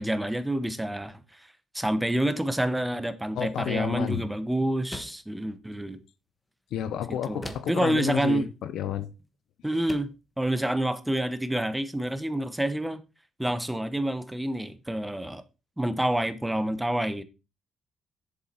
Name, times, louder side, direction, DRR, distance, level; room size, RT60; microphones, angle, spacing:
voice 1, 0.0-1.5 1.7-6.0 7.3-8.5 9.6-10.1 10.4-13.0 13.4-15.4 15.8-17.2, right 1 dB, 10° right, 1.0 m, -28 dB
voice 2, 3.4-4.2 6.7-9.1, left 10 dB, 80° left, 0.9 m, -30 dB
sound 1, 4.9-5.3 7.4-7.9 9.2-9.3 9.9-10.2, left 1 dB, 20° left, 1.3 m, -40 dB
7.4 x 7.2 x 4.3 m
cardioid pair, 90°, 0 cm